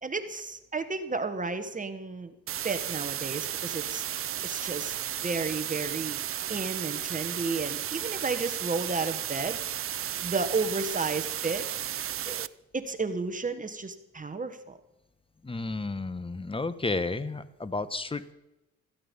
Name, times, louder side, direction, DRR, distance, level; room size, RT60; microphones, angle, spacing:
voice 1, 0.0-2.3 2.6-4.0 4.4-5.0 5.2-9.6 10.2-11.7 12.3-12.5 12.7-14.8, right 4 dB, 25° right, 10 dB, 1.4 m, -32 dB
sound 1, 2.5-12.5, right 11 dB, 45° right, 0.6 m, -34 dB
voice 2, 15.4-18.3, left 3 dB, 20° left, 14 dB, 1.1 m, -32 dB
16.0 x 14.5 x 5.4 m, 0.90 s
cardioid pair, 90°, 30 cm